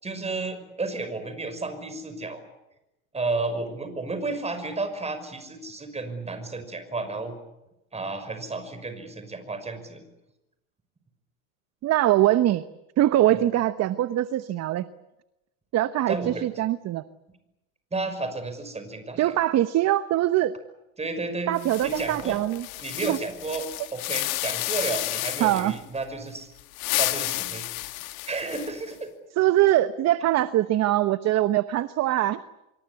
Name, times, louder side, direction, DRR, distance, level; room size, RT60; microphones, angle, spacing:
voice 1, 0.0-2.4 3.1-7.3 7.9-10.0 16.1-16.4 17.9-19.4 21.0-22.4 22.8-26.5 27.0-27.7 28.3-29.1, right 3 dB, 15° right, 10 dB, 5.8 m, -32 dB
voice 2, 11.8-12.6 13.0-14.8 15.7-17.0 19.2-20.5 21.5-22.7 23.0-23.2 25.4-25.8 29.4-32.4, right 14 dB, 35° right, 13 dB, 1.0 m, -22 dB
sound 1, 21.6-25.8 26.6-28.9, left 19 dB, 70° left, 1.8 m, -31 dB
26.0 x 24.0 x 8.3 m, 0.93 s
hypercardioid pair, 105°, 43 cm